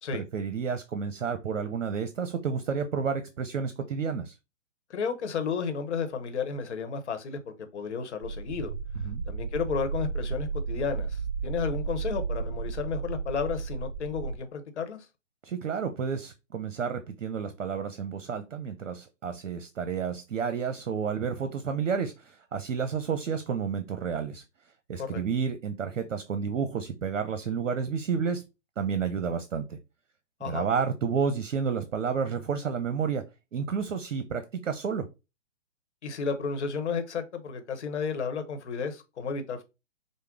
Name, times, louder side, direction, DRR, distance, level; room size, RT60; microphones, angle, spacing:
voice 1, 0.1-4.4 9.0-9.2 15.4-24.4 24.9-28.4 28.8-29.8 30.4-33.2 33.5-35.1, right 6 dB, 75° right, 0.8 m, -30 dB
voice 2, 4.9-8.7 9.3-15.0 25.0-25.2 30.4-30.7 36.0-39.6, left 5 dB, 65° left, 1.0 m, -32 dB
sound 1, 8.2-14.4, right 5 dB, 30° right, 0.5 m, -33 dB
5.3 x 2.0 x 3.6 m
hypercardioid pair, 140°, 38 cm